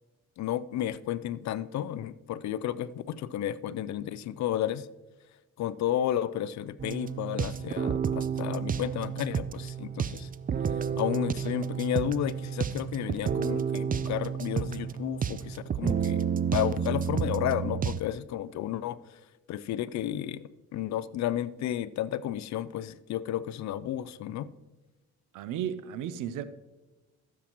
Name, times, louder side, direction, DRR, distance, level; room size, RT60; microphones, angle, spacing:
voice 1, 0.4-4.9 5.6-10.3 11.0-16.2 16.5-19.0 19.5-20.4 20.7-24.5, left 11 dB, 65° left, 0.5 m, -32 dB
sound 1, 6.8-18.0, right 7 dB, 30° right, 0.4 m, -31 dB
voice 2, 25.3-26.4, right 9 dB, 90° right, 0.6 m, -34 dB
14.0 x 7.3 x 3.0 m
cardioid pair, 90°, 30 cm